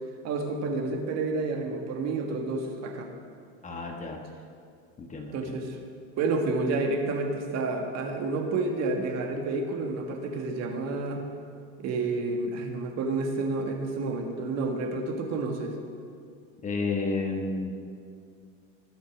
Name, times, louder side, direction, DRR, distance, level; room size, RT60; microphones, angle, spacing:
voice 1, 0.2-3.1 5.3-5.8 6.2-11.2 11.8-15.8, right 3 dB, 40° right, 3 dB, 1.8 m, -30 dB
voice 2, 3.6-4.2 5.0-5.6 16.6-17.8, left 3 dB, 20° left, 3 dB, 1.2 m, -31 dB
19.5 x 7.0 x 6.1 m, 2.3 s
supercardioid pair, 130°, 39 cm